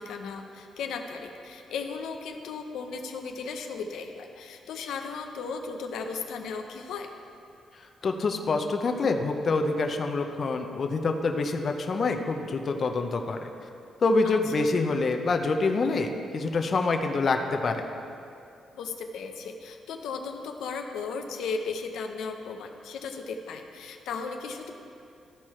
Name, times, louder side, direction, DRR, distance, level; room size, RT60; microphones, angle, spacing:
voice 1, 0.0-7.1 14.2-14.7 18.7-24.7, left 5 dB, 85° left, 4 dB, 0.6 m, -36 dB
voice 2, 8.0-13.5 14.0-17.8, left 3 dB, 45° left, 4 dB, 0.6 m, -26 dB
13.5 x 4.6 x 4.4 m, 2.6 s
cardioid pair, 105°, 0 cm